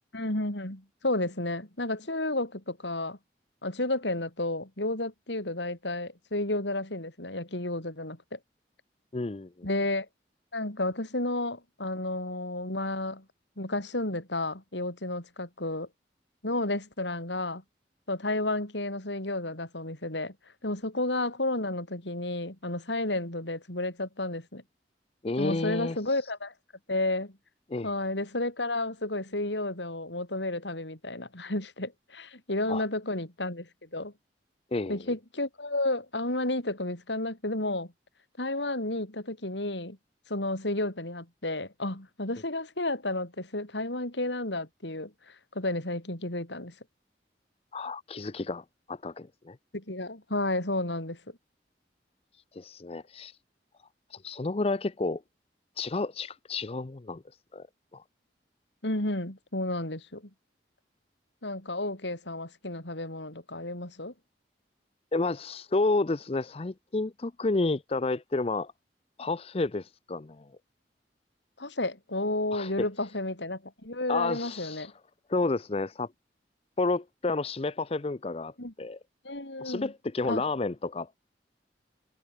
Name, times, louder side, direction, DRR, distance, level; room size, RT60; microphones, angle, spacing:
voice 1, 0.1-3.2 3.6-8.4 9.6-10.1 10.5-13.3 13.6-15.9 16.4-17.6 18.1-20.4 20.6-24.6 25.4-26.5 26.9-27.4 27.8-34.1 34.9-37.9 38.4-40.0 40.3-46.8 49.7-51.2 58.8-60.3 61.4-64.1 71.6-74.9 78.6-78.7 79.2-79.9 80.3-80.4, left 2 dB, 85° left, 5.4 m, -32 dB
voice 2, 9.1-9.7 25.2-26.0 27.7-27.9 32.7-32.8 34.7-35.0 47.7-49.6 52.5-53.3 54.1-55.2 55.8-57.2 57.5-57.7 57.9-58.0 65.1-68.7 69.2-70.5 72.5-72.7 74.1-74.9 75.3-76.1 76.8-78.5 78.8-79.0 79.6-81.2, left 3 dB, 35° left, 0.6 m, -30 dB
head